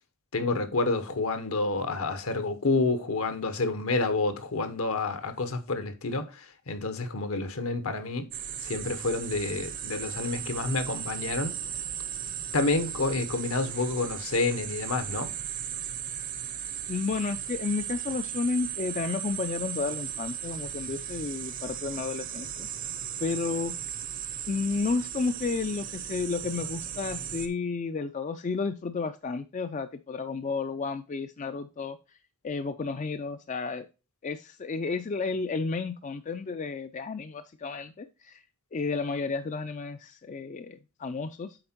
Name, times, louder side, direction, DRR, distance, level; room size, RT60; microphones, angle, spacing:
voice 1, 0.3-8.3 8.6-11.5 12.5-15.3, left 3 dB, 70° left, 1.0 m, -29 dB
sound 1, 8.3-27.5, right 9 dB, 40° right, 0.7 m, -36 dB
voice 2, 16.9-22.7 23.2-23.7 24.5-32.0 32.4-33.9 34.2-38.4 38.7-41.6, left 4 dB, 35° left, 0.3 m, -32 dB
7.7 x 4.3 x 4.4 m
head